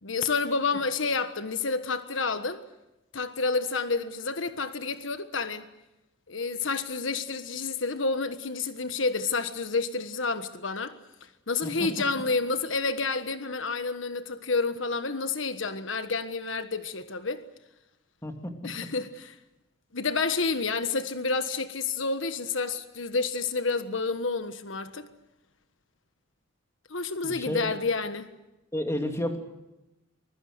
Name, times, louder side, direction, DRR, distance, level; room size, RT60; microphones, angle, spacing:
voice 1, 0.0-2.6 3.1-5.6 6.3-11.0 11.5-17.4 18.6-19.3 19.9-25.1 26.9-28.3, left 4 dB, 70° left, 1.5 m, -29 dB
voice 2, 11.6-12.1 18.2-18.6 27.2-27.7 28.7-29.4, left 1 dB, 15° left, 2.9 m, -31 dB
25.0 x 21.5 x 8.0 m
head